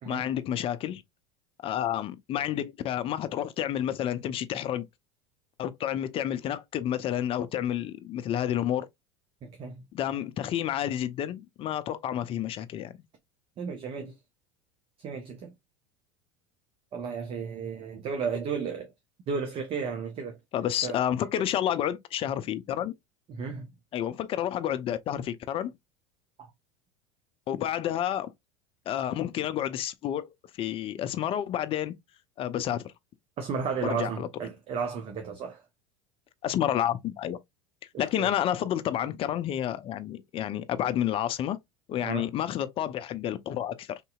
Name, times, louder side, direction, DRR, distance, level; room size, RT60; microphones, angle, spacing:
voice 1, 0.1-1.0 1.6-4.9 5.6-8.9 9.9-12.9 20.5-22.9 23.9-25.7 27.5-28.3 28.9-30.3 30.6-31.9 32.4-32.8 33.8-34.3 36.4-37.4 38.0-41.6 41.9-44.0, left 11 dB, 40° left, 0.5 m, -30 dB
voice 2, 9.4-9.8 13.6-14.1 15.0-15.5 16.9-18.9 19.3-20.4 20.7-20.9 23.3-23.7 33.4-35.6 37.9-38.3 42.0-42.3, right 5 dB, 40° right, 0.7 m, -33 dB
3.6 x 2.7 x 2.3 m
hypercardioid pair, 80°, 15 cm